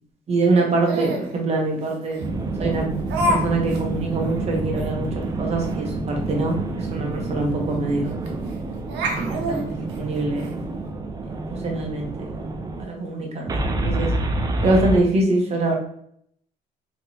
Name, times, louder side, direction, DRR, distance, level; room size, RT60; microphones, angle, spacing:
voice 1, 0.3-2.2 2.6-2.9 3.3-8.1 9.2-10.6 11.4-12.4 12.8-13.5 13.8-14.1 14.6-15.8, right 2 dB, 40° right, 0 dB, 1.1 m, -24 dB
Laughter, 0.8-1.3 2.1-2.2 3.1-3.4 3.7-3.8 4.3-4.4 4.8-4.9 6.8-6.9 7.2-7.3 8.3-8.5 8.9-10.5, equal, 90° right, 0.8 m, -26 dB
sound 1, 2.2-12.8 13.5-15.0, right 2 dB, 20° right, 0.5 m, -28 dB
3.4 x 3.0 x 2.8 m, 0.68 s
cardioid pair, 110°, 17 cm